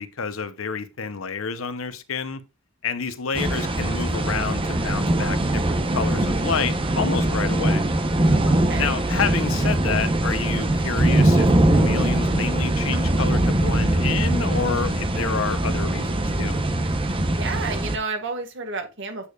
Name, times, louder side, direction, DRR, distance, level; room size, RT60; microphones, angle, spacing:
voice 1, 0.0-2.4 2.8-7.8 8.8-16.6, left 5 dB, 85° left, 0.8 m, -29 dB
sound 1, 3.3-18.0, right 1 dB, 25° right, 0.9 m, -22 dB
voice 2, 8.3-9.0 17.3-19.3, right 4 dB, 65° right, 1.8 m, -31 dB
8.5 x 6.6 x 2.4 m
head